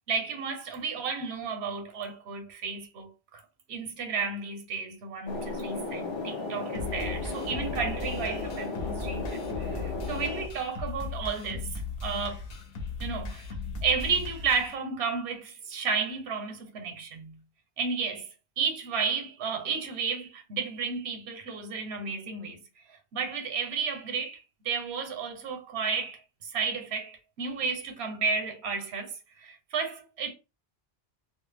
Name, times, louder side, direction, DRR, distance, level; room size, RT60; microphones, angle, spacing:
voice 1, 0.1-3.4 3.7-12.4 13.0-13.5 13.8-17.4 17.8-18.3 18.6-22.6 22.9-30.3, right 5 dB, 90° right, 0.9 m, -32 dB
sound 1, 5.3-10.5, left 3 dB, 40° left, 0.4 m, -35 dB
sound 2, 6.7-14.7, left 4 dB, 65° left, 0.9 m, -37 dB
2.4 x 2.1 x 3.2 m
omnidirectional pair, 1.1 m